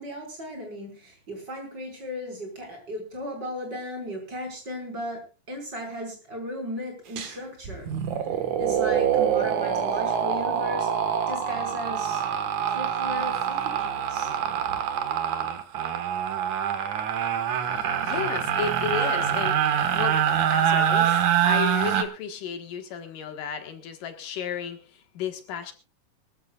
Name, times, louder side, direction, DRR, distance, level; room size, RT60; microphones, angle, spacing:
voice 1, 0.0-7.9 8.6-10.9 11.3-12.2 12.7-14.3, left 1 dB, 30° right, 5.7 m, -36 dB
sound 1, 7.2-7.3 7.6-22.0, right 9 dB, 65° right, 2.8 m, -25 dB
voice 2, 18.0-20.2 20.5-25.7, left 7 dB, 75° left, 3.2 m, -33 dB
23.0 x 14.5 x 2.4 m
omnidirectional pair, 3.8 m